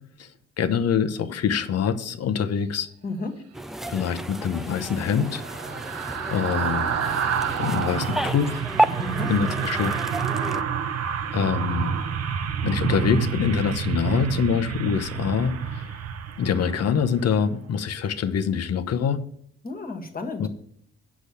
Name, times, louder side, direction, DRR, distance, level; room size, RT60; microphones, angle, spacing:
voice 1, 0.6-2.9 3.9-5.4 6.3-6.9 7.6-8.7 9.3-9.9 10.5-10.6 11.3-12.0 12.6-15.9 16.4-19.2 20.4-20.5, left 7 dB, 55° left, 9 dB, 0.9 m, -25 dB
voice 2, 3.0-3.4 9.0-9.3 19.6-20.5, left 3 dB, 30° left, 4 dB, 1.7 m, -32 dB
sound 1, 3.5-10.6, right 1 dB, ahead, 0.3 m, -31 dB
sound 2, 4.1-17.5 17.8-18.0, right 7 dB, 55° right, 0.8 m, -29 dB
8.4 x 6.1 x 6.8 m, 0.68 s
cardioid pair, 90°, 30 cm